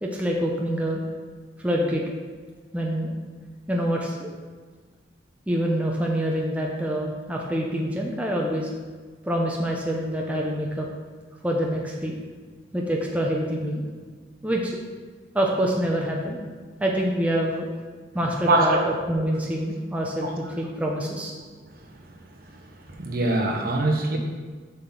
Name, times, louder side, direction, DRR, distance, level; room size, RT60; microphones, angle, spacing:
voice 1, 0.0-1.0 1.6-2.0 2.7-3.1 3.7-4.3 5.5-8.7 9.2-10.9 11.4-12.2 12.7-13.8 14.4-14.8 15.3-16.4 16.8-17.7 18.1-20.3 20.6-21.3, equal, 5° right, -2 dB, 0.7 m, -26 dB
voice 2, 18.5-18.8 22.5-24.2, right 2 dB, 50° right, 2 dB, 1.0 m, -23 dB
7.7 x 6.0 x 3.9 m, 1.5 s
head